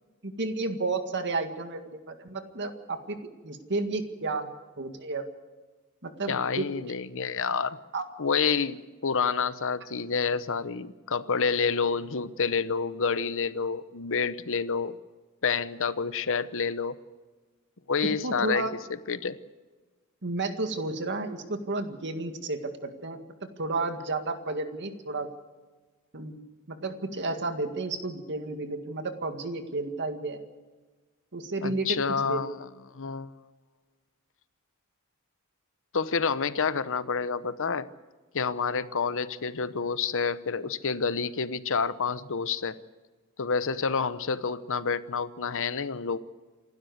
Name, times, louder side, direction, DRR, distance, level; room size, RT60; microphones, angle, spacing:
voice 1, 0.2-3.2 3.4-5.2 6.0-6.7 7.9-8.0 18.2-18.7 20.2-23.2 23.6-25.3 26.1-26.4 26.7-30.4 31.3-32.4, right 3 dB, 55° right, 7 dB, 2.0 m, -32 dB
voice 2, 6.3-7.8 8.2-15.0 15.4-17.0 17.9-19.4 31.6-32.6 32.9-33.3 35.9-37.9 38.3-42.8 43.4-46.2, left 5 dB, 65° left, 14 dB, 0.9 m, -28 dB
28.0 x 12.5 x 8.0 m, 1.3 s
head